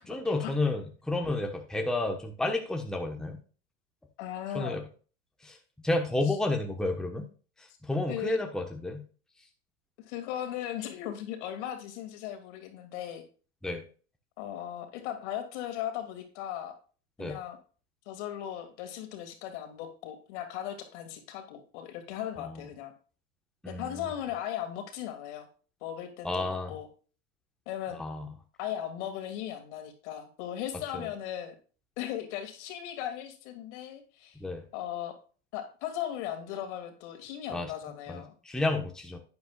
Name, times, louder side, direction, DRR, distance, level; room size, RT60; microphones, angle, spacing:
voice 1, 0.1-3.4 4.5-4.8 5.4-5.6 5.8-7.3 7.8-9.0 13.6-13.8 17.2-17.4 22.4-22.5 23.6-24.1 26.2-26.7 28.0-28.3 30.9-31.1 34.4-34.6 37.5-37.7 38.1-39.2, left 2 dB, ahead, 2 dB, 1.2 m, -31 dB
voice 2, 4.2-4.8 6.3-6.4 8.1-8.4 10.1-13.2 14.4-16.7 17.2-17.6 18.1-22.9 23.7-25.5 25.8-26.9 27.7-28.0 28.6-31.5 32.0-34.4 34.7-35.1 35.5-38.3, left 11 dB, 65° left, 6 dB, 2.5 m, -37 dB
11.5 x 9.5 x 2.4 m, 0.38 s
hypercardioid pair, 110°, 38 cm